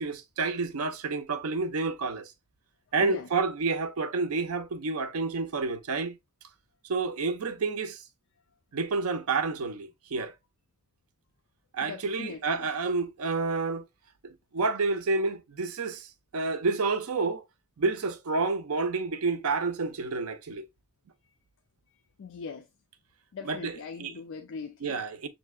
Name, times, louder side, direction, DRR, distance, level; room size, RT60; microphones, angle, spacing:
voice 1, 0.0-2.3 2.9-6.2 6.8-8.0 8.7-10.3 11.7-13.8 14.2-17.4 17.8-20.7 23.4-24.2 24.8-25.3, right 4 dB, 80° right, 0.5 m, -29 dB
voice 2, 11.8-12.4 22.2-22.6 23.3-25.0, left 5 dB, 60° left, 0.4 m, -40 dB
6.4 x 2.7 x 2.3 m
head